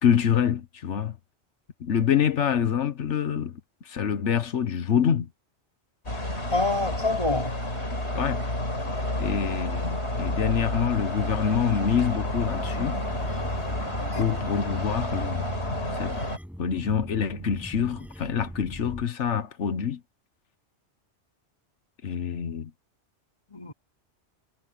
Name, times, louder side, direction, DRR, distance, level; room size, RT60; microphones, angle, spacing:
voice 1, 0.0-1.1 1.8-3.6 3.8-5.3 8.1-8.4 9.2-13.0 14.2-15.5 15.9-16.2 16.6-20.0 22.0-22.7, left 8 dB, 90° left, 1.4 m, -26 dB
sound 1, 6.1-16.4, left 1 dB, 70° left, 5.7 m, -30 dB
voice 2, 6.5-7.6 14.1-14.4 23.5-23.7, left 2 dB, 25° left, 3.4 m, -27 dB
sound 2, 12.2-19.1, equal, ahead, 6.7 m, -40 dB
omnidirectional pair, 1.2 m